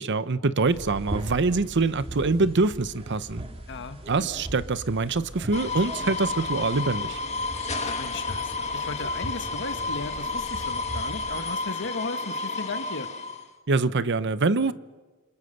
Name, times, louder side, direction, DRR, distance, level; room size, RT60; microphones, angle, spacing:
voice 1, 0.0-3.4 4.1-7.2 13.7-14.7, right 3 dB, 55° right, 0.8 m, -24 dB
sound 1, 0.7-11.5, right 1 dB, 25° right, 2.4 m, -39 dB
voice 2, 3.7-4.3 7.8-13.1, left 3 dB, 55° left, 1.5 m, -36 dB
sound 2, 5.5-13.4, left 3 dB, 30° left, 1.9 m, -31 dB
29.0 x 26.0 x 6.7 m
head